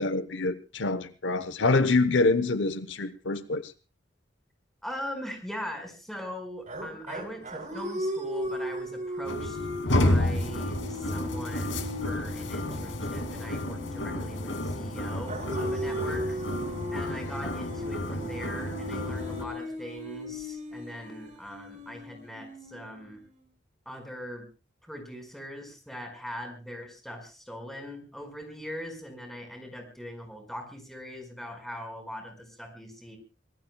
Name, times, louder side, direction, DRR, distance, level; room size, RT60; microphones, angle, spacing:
voice 1, 0.0-3.7, left 3 dB, 75° left, 13 dB, 0.9 m, -26 dB
voice 2, 4.8-9.6 9.9-16.4 16.9-23.2 23.9-24.5 24.8-33.2, equal, ahead, 4 dB, 5.2 m, -41 dB
sound 1, 6.7-14.7 15.3-23.3, equal, 45° right, 3.9 m, -37 dB
sound 2, 9.2-19.4, left 1 dB, 90° left, 2.5 m, -31 dB
25.5 x 19.0 x 2.3 m, 0.32 s
head